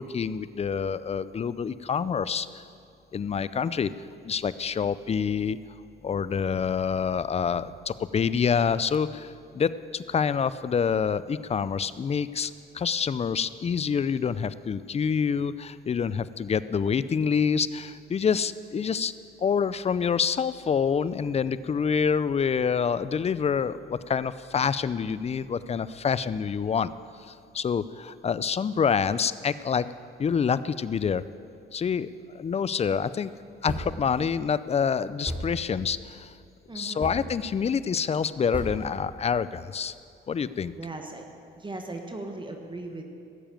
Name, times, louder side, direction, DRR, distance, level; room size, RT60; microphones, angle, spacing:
voice 1, 0.0-2.6 3.1-3.9 4.2-5.6 6.0-19.1 19.4-26.9 27.3-29.9 30.2-31.2 31.7-33.3 33.6-36.3 36.7-39.9 40.3-40.7, left 6 dB, 30° left, 16 dB, 0.5 m, -27 dB
sound 1, 33.7-34.1 34.5-34.6 35.2-35.7 37.0-37.2 38.5-38.8, equal, 10° right, 2.8 m, -34 dB
voice 2, 36.7-37.1 40.8-41.3 41.6-43.0, right 2 dB, 25° right, 3 dB, 1.4 m, -38 dB
15.5 x 7.1 x 9.0 m, 2.4 s
cardioid pair, 90°, 20 cm